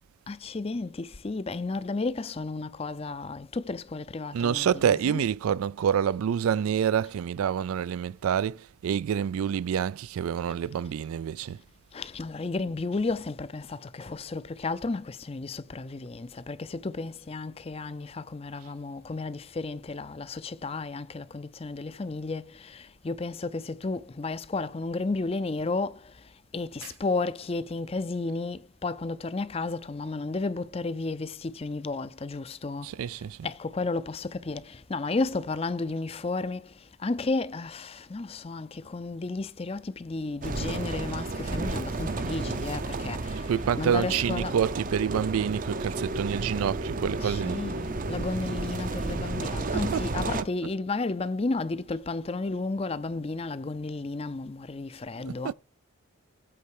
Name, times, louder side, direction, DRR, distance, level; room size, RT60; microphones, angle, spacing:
voice 1, 0.3-5.2 11.9-26.0 26.5-32.9 33.4-36.7 37.0-43.2 43.8-44.6 47.2-55.5, left 3 dB, 25° left, 0.4 m, -33 dB
voice 2, 4.3-11.6 26.8-26.9 32.8-33.4 43.5-47.6 49.7-50.4 55.2-55.5, right 8 dB, 85° right, 0.3 m, -28 dB
sound 1, 40.4-50.4, right 2 dB, 40° right, 0.6 m, -32 dB
8.4 x 4.3 x 6.5 m
head